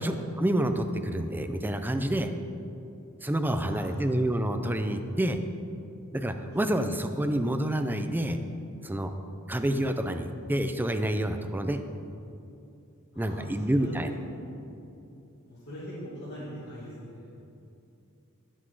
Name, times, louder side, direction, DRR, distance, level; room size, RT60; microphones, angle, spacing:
voice 1, 0.0-2.3 3.2-5.4 6.1-8.4 8.8-9.1 9.5-11.8 13.2-14.1, right 1 dB, 10° right, 7 dB, 0.4 m, -28 dB
voice 2, 3.6-4.1 6.5-6.6 13.1-13.9 14.3-14.4 15.4-17.3, equal, 50° left, -12 dB, 2.3 m, -42 dB
9.9 x 5.9 x 4.7 m, 2.7 s
head